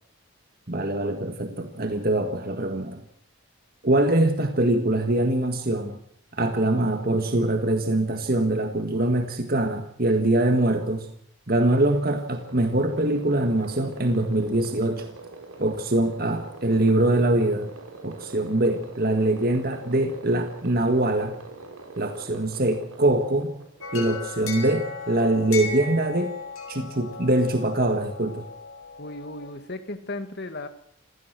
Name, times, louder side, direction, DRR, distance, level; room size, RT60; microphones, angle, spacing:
voice 1, 0.7-3.0 3.8-6.0 6.3-11.1 11.5-15.1 15.6-17.7 18.0-21.4 22.0-23.5 23.9-26.3 26.7-28.5, right 1 dB, 45° right, 6 dB, 1.8 m, -23 dB
sound 1, 12.3-24.9, right 2 dB, 85° right, 4.9 m, -44 dB
sound 2, 23.8-29.5, left 4 dB, 70° left, 4.3 m, -37 dB
voice 2, 29.0-30.7, left 2 dB, 50° left, 9 dB, 2.0 m, -35 dB
26.5 x 17.0 x 6.2 m, 0.63 s
head